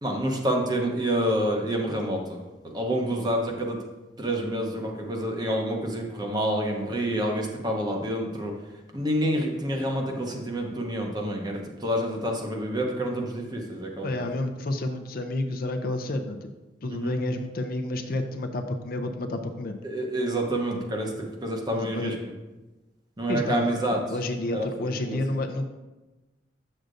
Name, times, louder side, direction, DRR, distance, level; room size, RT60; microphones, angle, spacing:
voice 1, 0.0-2.4 2.6-3.8 4.2-8.5 8.9-14.3 16.9-17.1 19.8-22.2 23.2-24.0 24.5-25.2, right 1 dB, 20° right, 1 dB, 0.8 m, -28 dB
voice 2, 14.0-16.5 16.8-19.8 21.7-22.1 23.3-23.8 24.1-25.7, left 2 dB, 50° left, 5 dB, 0.5 m, -30 dB
7.7 x 6.4 x 2.5 m, 1.1 s
head